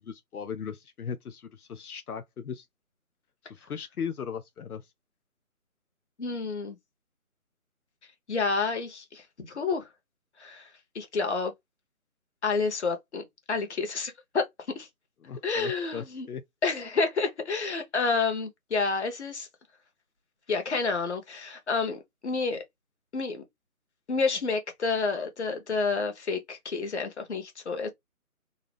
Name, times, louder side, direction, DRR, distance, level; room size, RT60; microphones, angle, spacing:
voice 1, 0.0-2.7 3.4-4.9 15.2-16.4, left 7 dB, 85° left, 0.6 m, -38 dB
voice 2, 6.2-6.8 8.3-9.9 10.4-11.5 12.4-14.4 14.7-14.9 15.4-16.3 16.6-19.5 20.5-22.6 23.1-23.4 24.1-27.9, left 4 dB, 50° left, 1.1 m, -29 dB
3.8 x 2.1 x 3.3 m
figure-of-eight pair, 155°, 43 cm